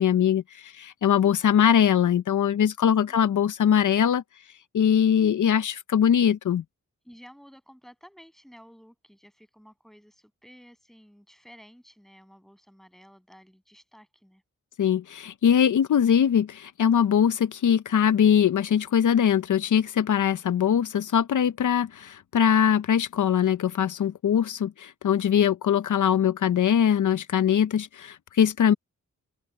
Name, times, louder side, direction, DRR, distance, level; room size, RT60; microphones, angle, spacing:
voice 1, 0.0-4.2 4.7-6.6 14.8-28.7, left 8 dB, 80° left, 0.6 m, -22 dB
voice 2, 3.0-3.4 7.0-14.4 24.3-24.5, equal, ahead, 7.9 m, -53 dB
open air
wide cardioid pair, 85°, 30 cm